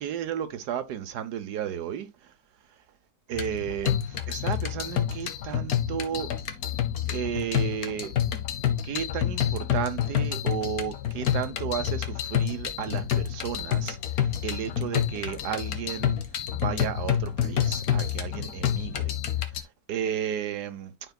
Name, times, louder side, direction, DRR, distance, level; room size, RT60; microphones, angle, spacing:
voice 1, 0.0-2.3 3.3-6.3 7.1-8.1 8.8-16.2 16.5-19.2 19.6-21.1, right 9 dB, 90° right, 1.4 m, -33 dB
sound 1, 3.3-19.6, left 10 dB, 70° left, 1.4 m, -28 dB
12.0 x 4.6 x 2.2 m
omnidirectional pair, 1.7 m